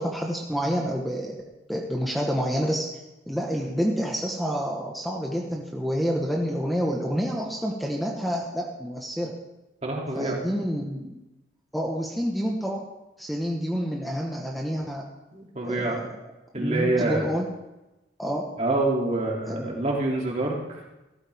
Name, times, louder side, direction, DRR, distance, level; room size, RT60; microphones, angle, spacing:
voice 1, 0.0-1.3 1.7-2.9 3.3-9.3 10.1-11.2 11.7-12.8 13.2-15.0 15.6-16.1 16.5-17.5 18.2-18.4 19.5-19.8, equal, ahead, -1 dB, 1.2 m, -28 dB
voice 2, 9.8-10.4 15.3-16.0 16.5-17.3 18.6-20.6, right 2 dB, 40° right, -1 dB, 2.6 m, -26 dB
16.0 x 13.5 x 3.5 m, 1.0 s
head